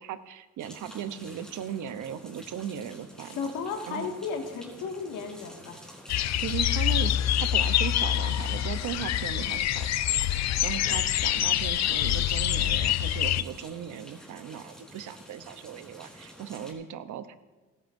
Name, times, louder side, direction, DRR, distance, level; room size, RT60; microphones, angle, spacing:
voice 1, 0.0-3.5 3.9-4.1 6.4-17.4, right 9 dB, 80° right, 11 dB, 0.9 m, -37 dB
sound 1, 0.6-16.7, equal, ahead, 4.0 m, -49 dB
voice 2, 3.2-5.8, left 5 dB, 80° left, 3 dB, 2.0 m, -34 dB
sound 2, 6.1-13.4, left 12 dB, 60° left, 0.6 m, -26 dB
29.5 x 9.9 x 2.7 m, 1.2 s
cardioid pair, 90°, 30 cm